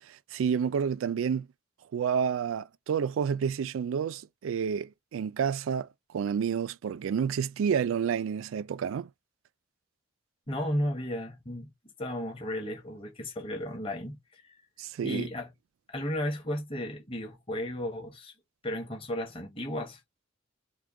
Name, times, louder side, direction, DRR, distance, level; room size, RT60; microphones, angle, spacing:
voice 1, 0.1-1.5 1.9-5.9 6.1-9.1 14.8-15.3, right 7 dB, 70° right, 0.3 m, -29 dB
voice 2, 10.5-11.7 12.0-14.6 15.0-15.5 15.9-18.3 18.6-20.0, left 1 dB, 30° left, 1.2 m, -34 dB
4.5 x 2.2 x 3.6 m
head